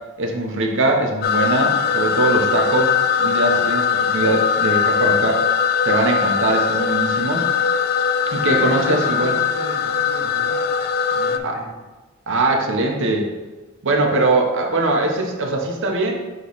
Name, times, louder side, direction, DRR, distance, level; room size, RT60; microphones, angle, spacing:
voice 1, 0.2-2.9 3.2-5.4 5.8-7.5 8.3-9.3 11.4-11.6 12.3-13.3 13.8-16.2, right 2 dB, 60° right, 2 dB, 0.9 m, -21 dB
sound 1, 1.2-11.4, left 6 dB, 45° left, 0.3 m, -20 dB
voice 2, 8.3-10.8 11.1-11.7, equal, 75° left, -6 dB, 1.8 m, -36 dB
7.6 x 3.1 x 4.0 m, 1.2 s
head